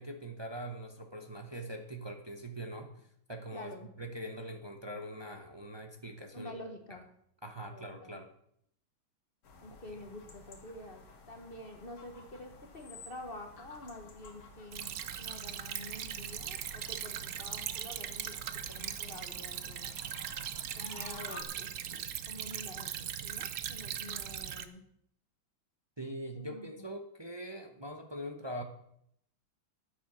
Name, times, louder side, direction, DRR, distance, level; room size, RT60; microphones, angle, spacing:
voice 1, 0.0-6.6 6.9-7.0 7.4-8.3 26.0-28.6, right 1 dB, 30° right, 4 dB, 0.5 m, -43 dB
voice 2, 3.5-3.9 6.3-7.0 7.7-8.2 9.6-19.9 20.7-24.8 26.3-26.9, left 1 dB, 35° left, 4 dB, 1.1 m, -48 dB
sound 1, 9.4-21.4, left 4 dB, 75° left, 2.5 m, -53 dB
Stream / Trickle dribble, 14.7-24.7, right 10 dB, 65° right, 0.8 m, -39 dB
9.8 x 8.3 x 6.3 m, 0.70 s
omnidirectional pair, 2.3 m